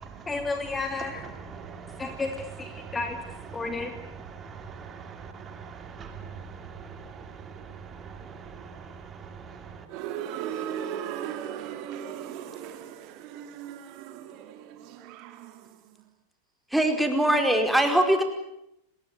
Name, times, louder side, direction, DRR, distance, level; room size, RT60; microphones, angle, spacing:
voice 1, 0.3-1.3 2.0-3.2 3.5-3.9, left 3 dB, 15° left, 6 dB, 2.7 m, -32 dB
voice 2, 1.4-2.2 2.8-3.0 4.3-9.8, right 6 dB, 25° right, 6 dB, 4.1 m, -43 dB
sound 1, 9.9-15.8, right 9 dB, 40° right, 2.9 m, -37 dB
voice 3, 16.7-18.2, right 1 dB, 5° right, 4 dB, 4.9 m, -22 dB
30.0 x 21.5 x 8.2 m, 0.81 s
figure-of-eight pair, 90°, 0 cm